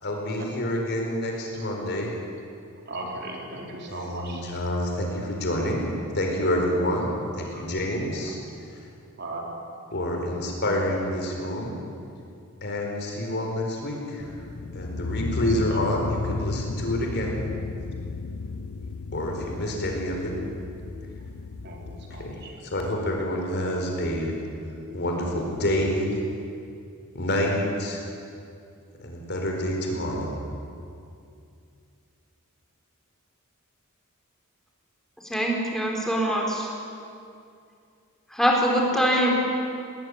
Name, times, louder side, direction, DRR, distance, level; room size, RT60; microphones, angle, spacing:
voice 1, 0.0-2.1 3.9-5.9 6.1-8.4 9.9-11.8 12.6-14.3 14.7-17.4 19.1-20.3 22.1-24.3 24.9-26.2 27.1-28.0 29.0-30.3, left 1 dB, 55° left, 1 dB, 4.6 m, -28 dB
voice 2, 2.9-4.4 7.5-7.6 9.2-9.5 21.6-22.5, right 2 dB, 50° right, 0 dB, 4.2 m, -37 dB
sound 1, 14.2-22.4, left 3 dB, 75° left, 0.9 m, -34 dB
voice 3, 35.2-36.7 38.3-39.3, equal, ahead, -2 dB, 4.4 m, -23 dB
20.0 x 18.5 x 9.7 m, 2.5 s
head